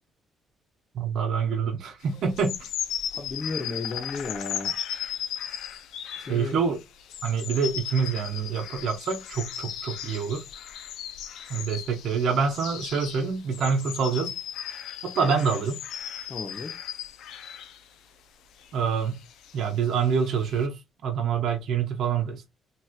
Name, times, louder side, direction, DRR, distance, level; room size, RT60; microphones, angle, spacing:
voice 1, 0.9-2.7 6.3-6.8 7.2-10.4 11.5-14.3 15.0-15.8 18.7-19.2 19.5-22.5, right 6 dB, 70° right, 0.8 m, -26 dB
sound 1, 2.2-17.8 18.6-20.7, left 10 dB, 85° left, 0.5 m, -36 dB
voice 2, 3.1-4.7 6.2-6.6 16.3-16.7, left 3 dB, 40° left, 0.9 m, -34 dB
3.0 x 3.0 x 2.4 m
cardioid pair, 90°, 0 cm